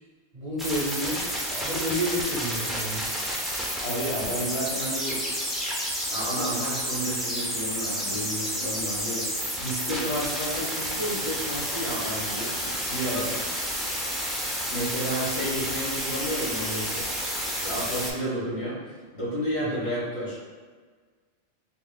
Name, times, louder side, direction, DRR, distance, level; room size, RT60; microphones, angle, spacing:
voice 1, 0.3-1.2 1.5-3.1 18.1-18.3 19.6-19.8, equal, 45° right, -7 dB, 0.6 m, -30 dB
sound 1, 0.6-18.1, equal, ahead, 0.3 m, -30 dB
voice 2, 3.8-5.2 6.1-9.3 9.6-13.4 14.7-17.1 17.5-20.5, equal, 80° left, -6 dB, 1.5 m, -31 dB
6.0 x 2.5 x 2.2 m, 1.5 s
omnidirectional pair, 1.1 m